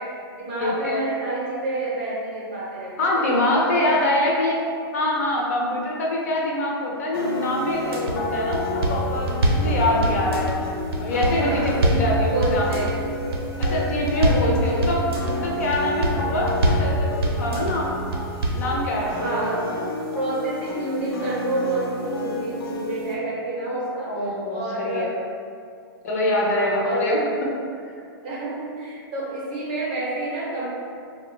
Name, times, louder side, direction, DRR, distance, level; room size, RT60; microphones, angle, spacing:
voice 1, 0.0-4.3 11.4-13.5 14.4-14.9 15.7-16.1 19.0-19.7 20.1-24.2 24.5-25.2 26.4-27.1 28.2-30.7, right 2 dB, 30° right, -6 dB, 0.6 m, -29 dB
voice 2, 0.6-1.0 3.0-4.6 4.9-10.5 11.0-12.8 13.6-18.0 18.5-19.4 23.7-25.1 26.0-27.2, left 1 dB, 40° left, -3 dB, 0.4 m, -24 dB
sound 1, 7.1-23.1, left 2 dB, 85° left, 0.7 m, -31 dB
sound 2, 7.7-8.1 8.5-9.7 10.0-10.6 10.9-12.1 12.4-13.0 13.3-13.8 14.1-14.5 14.8-15.3 15.7-16.2 16.5-16.9 17.2-17.7 18.1-18.6, right 1 dB, 80° right, 0.6 m, -22 dB
3.1 x 2.0 x 3.0 m, 2.3 s
hypercardioid pair, 175°, 13 cm